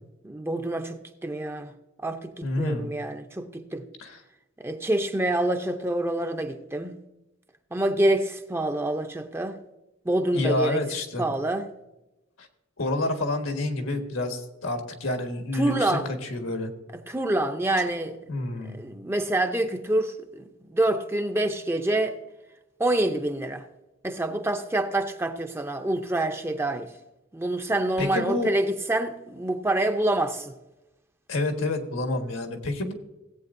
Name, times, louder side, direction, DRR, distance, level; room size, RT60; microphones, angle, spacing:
voice 1, 0.2-1.7 2.0-3.8 4.6-7.0 7.7-9.6 10.1-10.8 11.2-11.7 15.5-16.1 17.1-18.2 18.7-22.2 22.8-23.6 24.0-26.9 27.3-30.5, right 1 dB, 10° right, 0.6 m, -26 dB
voice 2, 2.4-2.9 4.0-4.2 10.3-11.2 12.4-12.5 12.8-16.0 16.3-16.7 18.3-18.8 28.0-28.5 31.3-32.9, left 2 dB, 85° left, 1.5 m, -28 dB
17.5 x 8.4 x 2.6 m
head